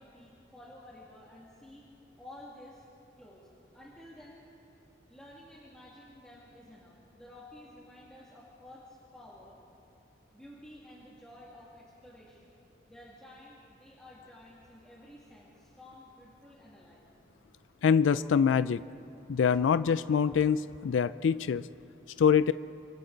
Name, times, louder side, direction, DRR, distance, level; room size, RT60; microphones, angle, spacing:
voice 1, 0.0-1.9 2.2-2.8 3.2-3.5 3.7-4.4 5.1-9.6 10.3-12.6 12.9-17.1, left 1 dB, 5° left, -7 dB, 2.2 m, -52 dB
voice 2, 17.8-18.8 19.3-21.6 22.2-22.5, left 7 dB, 90° left, 14 dB, 0.4 m, -24 dB
26.5 x 26.5 x 4.0 m, 2.9 s
head